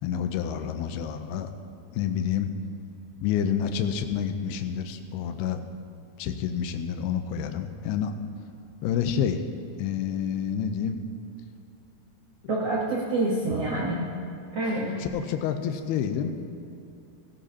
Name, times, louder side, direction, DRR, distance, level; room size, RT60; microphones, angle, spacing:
voice 1, 0.0-1.5 1.9-2.5 3.2-5.6 6.2-8.1 8.8-9.4 9.8-11.0 15.0-16.4, left 8 dB, 80° left, 8 dB, 2.5 m, -28 dB
voice 2, 12.5-14.0 14.5-15.0, right 2 dB, 75° right, -4 dB, 1.4 m, -27 dB
16.5 x 15.0 x 2.8 m, 2.7 s
omnidirectional pair, 4.7 m